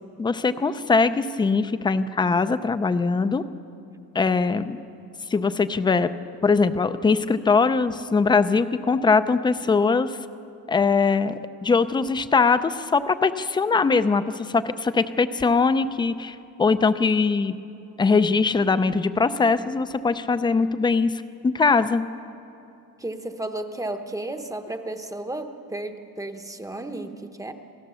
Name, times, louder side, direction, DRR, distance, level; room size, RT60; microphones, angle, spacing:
voice 1, 0.2-3.4 4.1-4.8 5.3-6.1 6.4-10.2 10.7-17.6 18.0-22.1, left 4 dB, 15° left, 12 dB, 0.4 m, -21 dB
voice 2, 23.0-27.5, right 1 dB, 10° right, 6 dB, 0.8 m, -33 dB
28.0 x 17.5 x 6.9 m, 2.7 s
cardioid pair, 170°, 36 cm